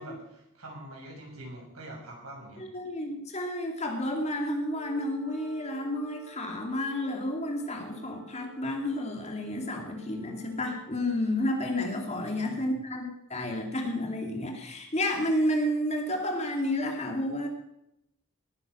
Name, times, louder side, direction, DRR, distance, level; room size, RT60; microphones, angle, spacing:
voice 1, 0.0-2.6 12.1-12.8, right 1 dB, 80° right, -1 dB, 6.7 m, -45 dB
voice 2, 2.6-13.0 13.3-17.5, left 1 dB, 30° left, 3 dB, 2.5 m, -31 dB
Wind instrument woodwind instrument, 4.7-11.0, right 3 dB, 25° right, 2.8 m, -53 dB
18.5 x 9.9 x 6.4 m, 0.81 s
head